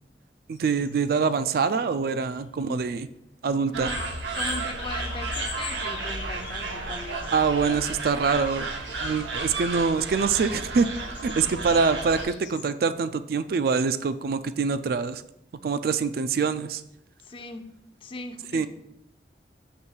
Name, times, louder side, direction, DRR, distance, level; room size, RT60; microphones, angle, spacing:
sound 1, 0.5-1.2 1.7-1.9 2.2-2.4 3.9-7.8 8.3-9.8 10.5-12.7, left 7 dB, 85° left, 0.8 m, -44 dB
voice 1, 0.5-3.1 3.4-3.9 7.3-8.7 9.0-10.9 11.2-15.2 15.6-16.8 18.5-18.7, right 5 dB, 55° right, 13 dB, 0.3 m, -25 dB
voice 2, 3.7-4.0 4.3-7.3 17.2-17.7 18.0-18.7, left 2 dB, 30° left, 7 dB, 0.5 m, -39 dB
sound 2, 3.7-12.2, right 3 dB, 85° right, 0.9 m, -32 dB
6.1 x 3.1 x 5.4 m, 0.80 s
head